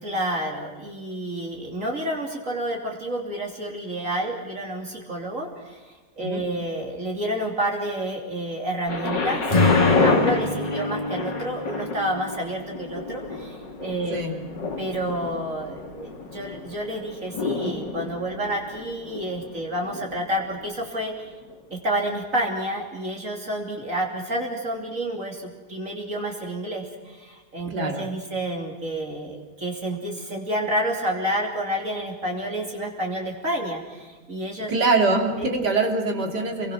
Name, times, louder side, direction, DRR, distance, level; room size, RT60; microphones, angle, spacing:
voice 1, 0.0-5.8 6.2-9.5 9.7-21.3 21.7-34.7 35.4-35.5, right 1 dB, 50° right, 0 dB, 3.5 m, -29 dB
Thunder, 8.9-20.7 21.5-21.6, left 3 dB, 90° left, 3.4 m, -29 dB
Acoustic guitar / Strum, 9.5-13.4, left 3 dB, 20° left, 2.4 m, -26 dB
voice 2, 27.7-28.1 34.7-36.7, right 3 dB, 70° right, 3 dB, 3.5 m, -23 dB
28.5 x 23.0 x 6.3 m, 1.3 s
omnidirectional pair, 1.8 m